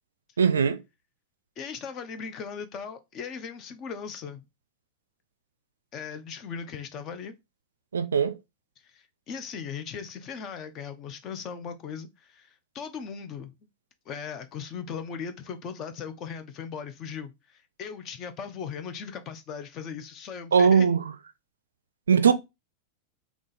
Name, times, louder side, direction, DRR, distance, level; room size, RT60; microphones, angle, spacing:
voice 1, 0.4-0.8 7.9-8.3 20.5-21.1 22.1-22.3, right 6 dB, 70° right, 0.4 m, -20 dB
voice 2, 1.6-4.4 5.9-7.3 8.8-13.5 14.1-20.9, left 6 dB, 35° left, 0.7 m, -38 dB
3.7 x 3.0 x 4.0 m
figure-of-eight pair, 90°, 0 cm